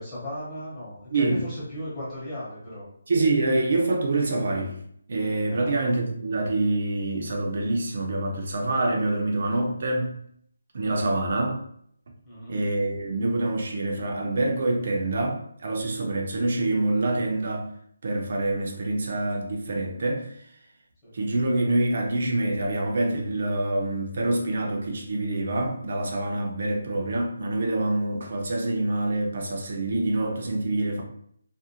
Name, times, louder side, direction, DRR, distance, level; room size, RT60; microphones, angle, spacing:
voice 1, 0.0-2.9 5.5-5.7 12.2-12.5 21.0-21.1, left 1 dB, 20° left, -10 dB, 0.9 m, -36 dB
voice 2, 1.1-1.4 3.1-4.7 5.1-10.1 10.7-11.6 12.5-17.7 18.0-20.3 21.1-31.0, right 2 dB, 50° right, 1 dB, 0.6 m, -26 dB
2.6 x 2.0 x 2.7 m, 0.66 s
hypercardioid pair, 170°, 0 cm